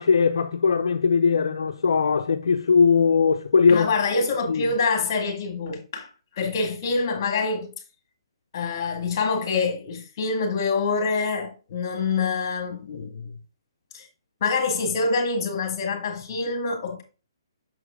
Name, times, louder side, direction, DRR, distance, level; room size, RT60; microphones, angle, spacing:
voice 1, 0.0-3.9 4.5-4.6, left 5 dB, 75° left, 0.5 m, -20 dB
voice 2, 3.7-7.7 8.5-13.3 13.9-14.1 14.4-17.0, left 4 dB, 45° left, 2.0 m, -26 dB
6.4 x 4.6 x 3.7 m
hypercardioid pair, 145°, 3 cm